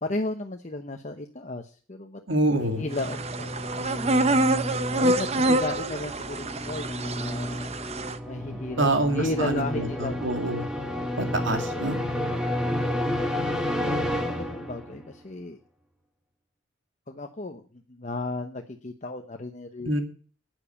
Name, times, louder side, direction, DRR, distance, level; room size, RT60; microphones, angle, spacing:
voice 1, 0.0-2.2 2.8-3.8 5.0-7.7 8.3-8.9 9.1-10.2 10.9-12.2 12.5-13.2 14.1-15.6 17.1-19.9, left 2 dB, 35° left, 5 dB, 0.9 m, -34 dB
voice 2, 2.3-2.8 8.8-10.7 11.2-12.0 19.8-20.0, right 1 dB, 65° right, 6 dB, 2.5 m, -26 dB
sound 1, 2.4-15.1, left 1 dB, 5° right, 2.2 m, -31 dB
sound 2, 2.9-8.2, right 2 dB, 30° right, 0.8 m, -26 dB
12.5 x 9.1 x 7.1 m, 0.41 s
head